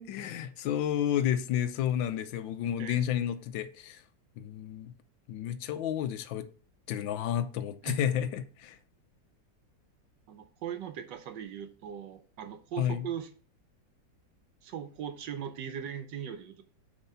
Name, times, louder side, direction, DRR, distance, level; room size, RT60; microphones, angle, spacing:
voice 1, 0.0-4.0 4.4-4.9 5.3-6.5 6.9-8.8 12.8-13.1, left 10 dB, 85° left, 1.4 m, -31 dB
voice 2, 10.3-13.3 14.6-16.6, right 9 dB, 75° right, 1.3 m, -39 dB
7.2 x 3.7 x 5.5 m
omnidirectional pair, 2.0 m